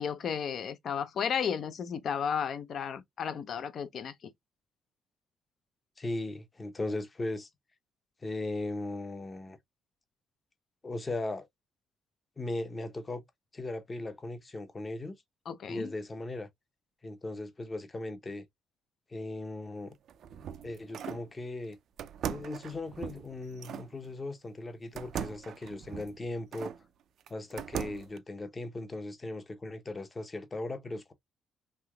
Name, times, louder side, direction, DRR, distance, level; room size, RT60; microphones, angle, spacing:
voice 1, 0.0-4.3 15.5-15.9, left 7 dB, 60° left, 0.5 m, -33 dB
voice 2, 6.0-7.5 8.2-9.6 10.8-11.5 12.4-13.2 13.5-15.2 15.7-16.5 17.0-18.5 19.1-19.9 20.6-21.8 22.2-26.7 27.3-31.1, left 2 dB, 25° left, 0.7 m, -38 dB
sound 1, 19.9-21.3 22.0-23.9 25.0-26.8 27.3-28.2, right 8 dB, 70° right, 0.4 m, -39 dB
3.3 x 2.8 x 2.2 m
cardioid pair, 90°, 0 cm